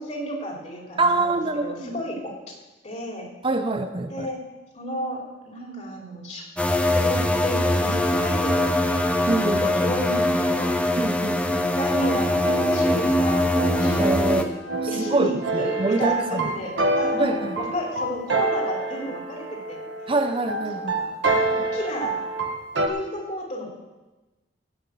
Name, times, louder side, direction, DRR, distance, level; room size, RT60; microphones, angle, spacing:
voice 1, 0.0-2.5 2.8-3.3 4.1-4.4 4.7-6.4 6.9-9.1 9.6-10.8 11.3-14.5 14.9-19.9 20.5-22.2 22.9-23.7, equal, 40° left, -1 dB, 3.1 m, -32 dB
voice 2, 1.0-2.0 3.4-4.3 9.3-9.7 11.0-11.4 14.0-14.5 15.0-16.5 17.2-17.6 20.1-20.9, right 2 dB, 30° right, 7 dB, 0.6 m, -25 dB
sound 1, 6.6-14.4, left 1 dB, 5° left, 0.8 m, -22 dB
sound 2, 12.0-22.9, right 2 dB, 85° right, 1.5 m, -27 dB
16.0 x 5.8 x 8.4 m, 1.1 s
head